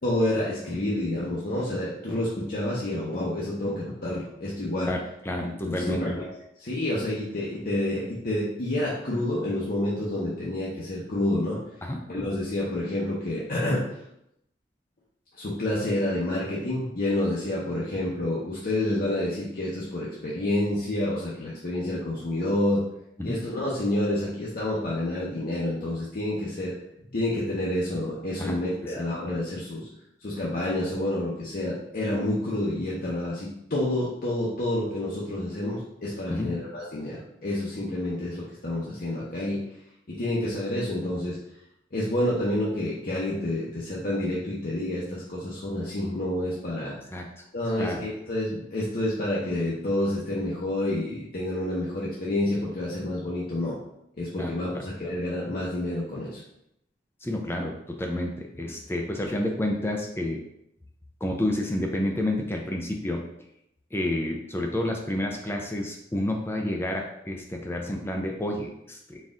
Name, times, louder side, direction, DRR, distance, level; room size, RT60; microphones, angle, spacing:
voice 1, 0.0-4.9 5.6-6.3 6.6-11.6 12.1-13.8 15.4-22.8 23.2-26.7 27.1-29.9 30.2-39.6 40.1-41.4 41.9-46.9 47.5-53.7 54.2-56.4, left 1 dB, 55° left, -6 dB, 0.7 m, -28 dB
voice 2, 5.2-6.0 11.8-12.0 23.3-23.4 28.4-28.6 28.8-28.9 36.3-36.5 47.1-47.2 47.8-48.0 54.4-54.8 57.2-60.4 61.2-63.2 63.9-69.2, left 1 dB, 15° left, 1 dB, 0.4 m, -29 dB
4.1 x 2.4 x 3.6 m, 0.79 s
head